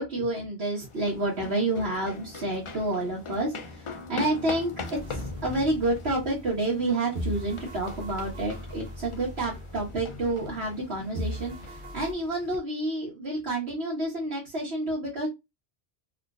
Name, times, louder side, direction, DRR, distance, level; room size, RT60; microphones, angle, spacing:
voice 1, 0.0-15.3, right 2 dB, 70° right, -5 dB, 1.4 m, -29 dB
sound 1, 0.8-12.6, left 3 dB, 50° left, 0.4 m, -41 dB
sound 2, 4.9-6.8 7.1-10.8 11.1-12.1, equal, 50° right, 0.9 m, -39 dB
3.6 x 2.5 x 2.4 m, 0.21 s
omnidirectional pair, 1.1 m